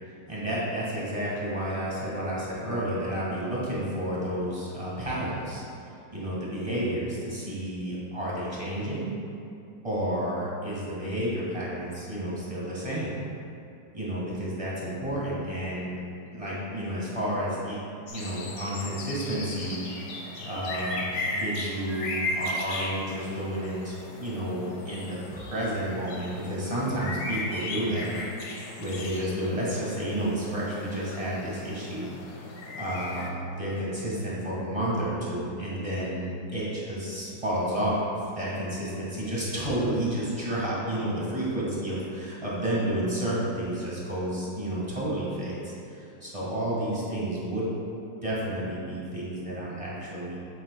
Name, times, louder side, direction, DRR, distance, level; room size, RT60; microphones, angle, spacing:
voice 1, 0.3-5.6 6.1-9.1 9.8-13.2 13.9-16.0 16.3-20.1 20.4-28.1 28.8-32.4 32.7-47.8 48.2-50.4, right 1 dB, 20° right, -7 dB, 1.5 m, -31 dB
sound 1, 18.1-33.3, left 1 dB, 65° left, 1.3 m, -36 dB
8.8 x 7.8 x 2.2 m, 2.6 s
omnidirectional pair, 2.1 m